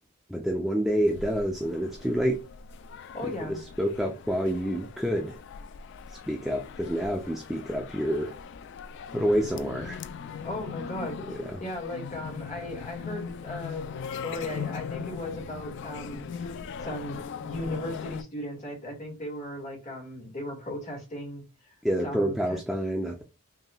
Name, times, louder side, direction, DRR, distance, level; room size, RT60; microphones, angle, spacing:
voice 1, 0.3-2.4 3.4-5.4 6.1-8.4 9.1-10.0 11.3-11.6 21.8-23.2, equal, ahead, 0.5 m, -28 dB
sound 1, 0.9-18.2, left 6 dB, 55° left, 0.3 m, -40 dB
voice 2, 3.1-3.6 10.4-21.7 22.0-22.6, left 1 dB, 35° left, 1.8 m, -37 dB
5.5 x 2.9 x 2.2 m
head